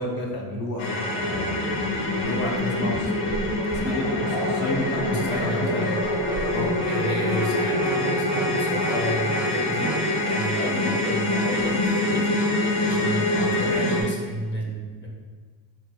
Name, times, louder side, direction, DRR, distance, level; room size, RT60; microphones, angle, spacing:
voice 1, 0.0-1.6 2.0-3.4 3.7-5.8 6.5-6.7 13.3-13.4, left 1 dB, 60° left, -1 dB, 0.9 m, -31 dB
sound 1, 0.8-14.0, left 1 dB, 85° left, 0.9 m, -25 dB
Growling, 1.2-10.2 11.5-11.7 12.2-13.3, right 3 dB, 25° right, 0.4 m, -35 dB
voice 2, 5.1-6.0 6.8-9.9 10.3-12.4 12.8-15.1, equal, 30° left, -3 dB, 0.8 m, -32 dB
4.5 x 4.1 x 2.2 m, 1.4 s
cardioid pair, 170°, 40 cm